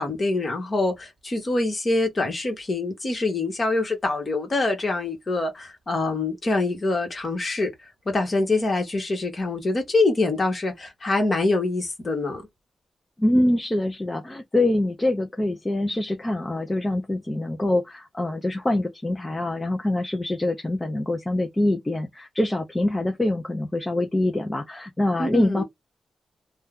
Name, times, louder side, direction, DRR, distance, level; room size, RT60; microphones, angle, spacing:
voice 1, 0.0-7.7 8.1-12.4 25.2-25.6, left 2 dB, 30° left, 1.3 m, -25 dB
voice 2, 13.2-25.6, left 1 dB, 15° left, 0.5 m, -24 dB
2.7 x 2.2 x 3.5 m
wide cardioid pair, 155°, 0 cm